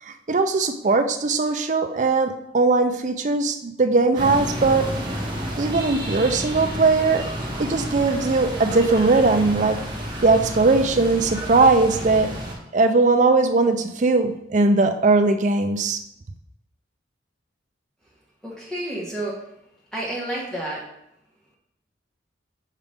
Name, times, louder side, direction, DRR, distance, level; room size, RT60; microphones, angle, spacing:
voice 1, 0.0-4.9 5.6-7.3 7.6-9.8 10.2-12.3 12.7-16.0, right 3 dB, 40° right, 7 dB, 0.4 m, -19 dB
sound 1, 4.1-12.5, equal, 25° right, 1.3 m, -30 dB
voice 2, 18.4-19.3 19.9-20.8, right 1 dB, 5° left, -5 dB, 1.5 m, -30 dB
5.5 x 4.9 x 3.5 m, 0.80 s
head